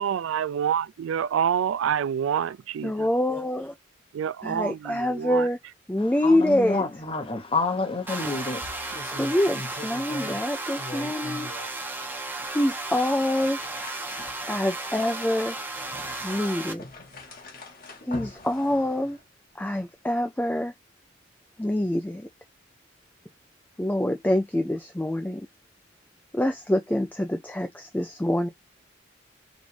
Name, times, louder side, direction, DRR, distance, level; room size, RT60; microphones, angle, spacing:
voice 1, 0.0-3.1 4.1-5.5, right 8 dB, 75° right, 0.3 m, -27 dB
voice 2, 2.8-3.7 4.4-5.6 5.9-6.8 9.1-11.5 12.5-13.6 14.5-15.6 16.2-16.8 18.1-19.2 19.6-20.7 21.6-22.3 23.8-25.4 26.3-28.5, left 1 dB, 10° left, 0.4 m, -25 dB
voice 3, 6.2-9.0, left 3 dB, 30° left, 1.1 m, -29 dB
sound 1, 7.0-7.2 7.5-7.6 8.0-10.5 10.7-11.8 12.4-12.5 13.2-19.3, left 2 dB, 45° left, 1.5 m, -42 dB
sound 2, 8.1-16.7, right 2 dB, 10° right, 1.0 m, -34 dB
5.0 x 2.6 x 3.3 m
head